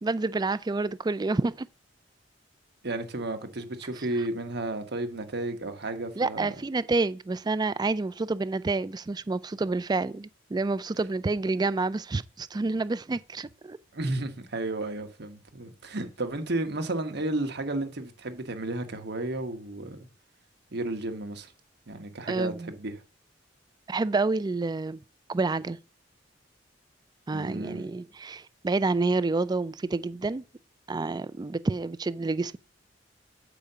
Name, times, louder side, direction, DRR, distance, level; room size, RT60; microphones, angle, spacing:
voice 1, 0.0-1.7 6.2-13.8 22.3-22.7 23.9-25.0 25.3-25.8 27.3-30.4 30.9-32.6, right 3 dB, 20° right, 0.3 m, -28 dB
voice 2, 2.8-6.5 13.9-20.1 20.7-21.5 21.9-22.9 27.3-27.8, right 2 dB, 60° right, 1.3 m, -33 dB
8.1 x 5.1 x 5.6 m
head